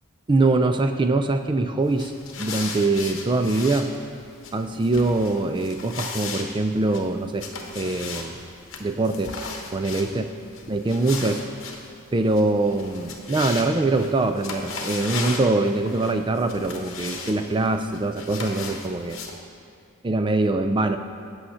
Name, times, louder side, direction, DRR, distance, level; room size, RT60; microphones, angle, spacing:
voice 1, 0.3-2.1 2.4-3.9 4.5-7.5 7.8-8.4 8.8-9.4 9.7-10.3 10.7-11.4 12.1-19.2 20.0-21.0, right 2 dB, 20° right, 8 dB, 0.4 m, -23 dB
sound 1, 1.8-19.3, left 4 dB, 60° left, 1.0 m, -37 dB
8.7 x 6.4 x 5.6 m, 2.6 s
head